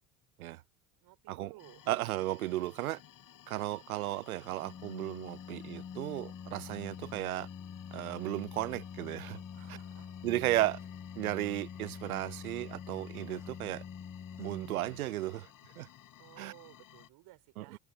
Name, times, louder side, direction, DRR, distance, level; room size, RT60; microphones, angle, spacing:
voice 1, 1.0-1.8 9.5-10.3 16.2-17.8, right 19 dB, 65° right, 4.5 m, -57 dB
sound 1, 1.6-17.1, left 12 dB, 50° left, 6.2 m, -57 dB
voice 2, 1.9-3.0 3.5-7.5 7.9-9.4 10.2-10.8 11.2-13.8 14.4-15.9 16.4-16.5 17.6-17.8, right 16 dB, 85° right, 0.7 m, -35 dB
Organ, 4.6-15.4, left 7 dB, 20° left, 0.7 m, -46 dB
sound 2, 9.3-9.5 10.8-11.0 11.8-11.9 13.4-13.6 14.4-14.6 15.3-15.4 15.7-16.0, right 1 dB, 5° right, 4.1 m, -66 dB
hypercardioid pair, 70°, 42 cm